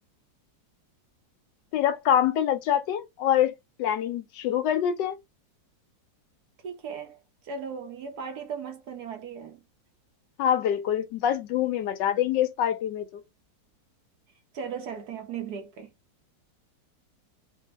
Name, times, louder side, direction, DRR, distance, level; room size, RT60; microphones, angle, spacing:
voice 1, 1.7-3.5 3.8-5.2 10.4-13.2, left 10 dB, 75° left, 1.1 m, -25 dB
voice 2, 6.6-9.6 14.5-15.9, right 6 dB, 70° right, 1.1 m, -37 dB
3.3 x 2.1 x 3.2 m
omnidirectional pair, 2.0 m